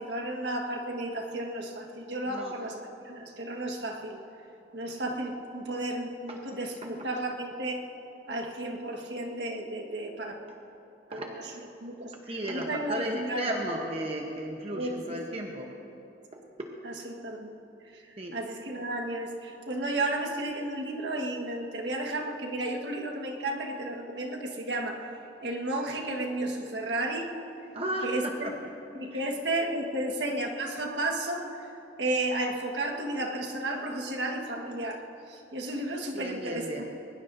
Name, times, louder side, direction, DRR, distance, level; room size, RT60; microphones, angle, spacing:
voice 1, 0.0-4.2 4.7-7.9 8.3-10.4 11.1-12.1 12.5-13.8 14.8-15.4 16.8-17.6 17.9-25.1 25.4-27.3 28.0-28.5 28.9-31.7 32.0-35.0 35.3-36.9, right 1 dB, 70° right, 1 dB, 1.7 m, -33 dB
voice 2, 12.3-15.7 16.3-16.7 18.2-18.4 27.7-28.5 29.1-29.2 36.1-36.9, right 1 dB, 35° right, 1 dB, 1.0 m, -34 dB
22.0 x 20.0 x 2.7 m, 2.9 s
head